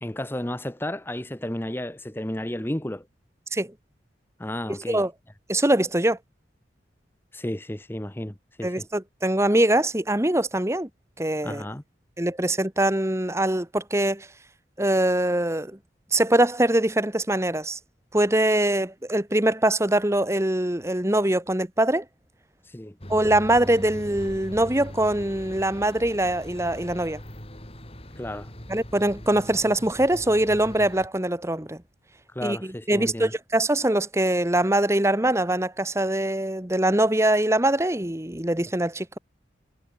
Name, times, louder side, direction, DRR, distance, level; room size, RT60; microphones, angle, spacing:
voice 1, 0.0-3.1 4.4-5.0 7.3-8.8 11.4-11.8 22.6-23.0 28.2-28.5 32.3-33.3, left 1 dB, 10° left, 1.0 m, -32 dB
voice 2, 4.7-5.1 5.5-6.2 8.6-10.9 11.2-11.6 12.2-14.3 14.8-15.8 16.1-17.8 18.1-22.0 23.1-27.2 28.7-31.8 32.4-32.6 32.9-39.2, right 1 dB, 15° right, 1.4 m, -23 dB
sound 1, 23.0-31.1, equal, 30° left, 6.5 m, -41 dB
head